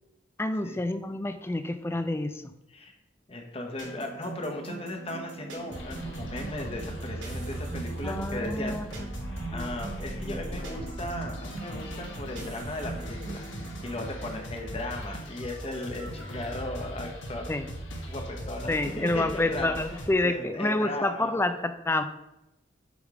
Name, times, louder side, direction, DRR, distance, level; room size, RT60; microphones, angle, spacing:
voice 1, 0.4-2.5 8.0-9.1 9.5-9.7 17.5-17.7 18.7-22.0, left 2 dB, 15° left, 9 dB, 0.4 m, -28 dB
voice 2, 3.3-8.8 9.5-13.5 13.8-17.5 18.1-19.8 20.2-21.3, left 1 dB, 30° left, 2 dB, 1.1 m, -36 dB
sound 1, 3.8-14.1, right 4 dB, 85° right, 2.3 m, -42 dB
sound 2, 5.7-20.1, equal, 80° left, 1.2 m, -38 dB
8.2 x 3.6 x 4.9 m, 0.92 s
head